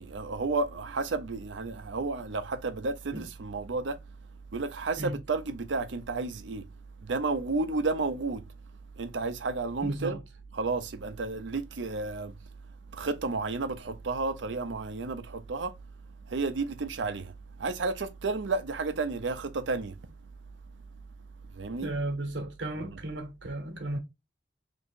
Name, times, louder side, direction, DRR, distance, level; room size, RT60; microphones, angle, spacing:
voice 1, 0.0-4.0 4.5-6.6 7.0-8.5 9.0-10.2 10.5-12.3 12.9-15.7 16.3-17.3 17.6-20.0 21.5-22.0 22.8-23.0, right 3 dB, 90° right, 0.6 m, -32 dB
voice 2, 9.8-10.2 21.8-24.0, right 1 dB, 70° right, 1.0 m, -34 dB
3.0 x 2.7 x 4.4 m
head